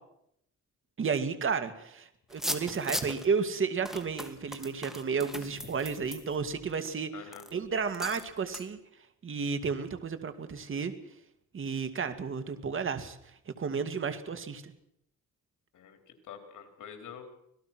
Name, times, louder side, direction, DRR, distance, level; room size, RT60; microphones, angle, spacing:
voice 1, 1.0-7.1 7.5-8.8 9.2-10.9 11.5-13.2 13.5-14.7, right 5 dB, 45° right, 9 dB, 2.2 m, -32 dB
sound 1, 2.3-3.3 3.9-6.9 7.3-7.5 7.9-8.3 8.5-8.7, equal, ahead, 2.2 m, -38 dB
voice 2, 7.1-7.5 15.7-17.2, left 8 dB, 80° left, 6 dB, 4.0 m, -47 dB
26.0 x 18.0 x 6.1 m, 0.77 s
cardioid pair, 120°, 30 cm